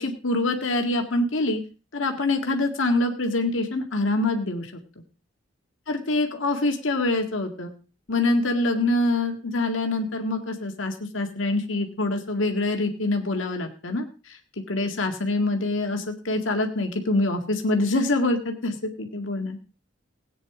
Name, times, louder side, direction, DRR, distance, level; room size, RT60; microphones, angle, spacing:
voice 1, 0.0-1.6 1.9-4.7 5.9-7.7 8.1-14.4 14.7-19.6, left 2 dB, 80° left, 4 dB, 2.0 m, -25 dB
17.0 x 9.2 x 4.9 m, 0.35 s
head